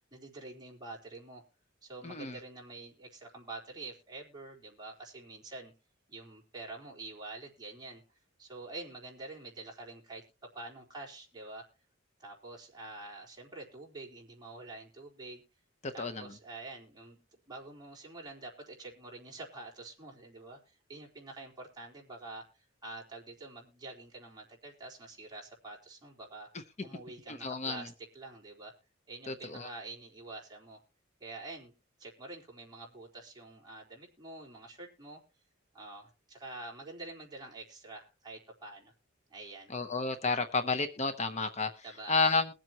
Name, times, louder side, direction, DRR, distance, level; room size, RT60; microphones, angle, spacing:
voice 1, 0.1-1.4 1.8-5.7 6.1-11.7 12.2-15.4 15.9-26.5 26.8-28.7 29.1-30.8 31.2-31.7 32.0-35.2 35.7-38.9 39.3-39.7 41.8-42.3, right 2 dB, 20° right, -1 dB, 4.0 m, -47 dB
voice 2, 2.0-2.4 15.8-16.2 27.3-27.8 29.3-29.7 39.7-41.7 42.1-42.5, left 4 dB, 35° left, 8 dB, 0.8 m, -31 dB
22.0 x 7.6 x 3.0 m, 0.31 s
head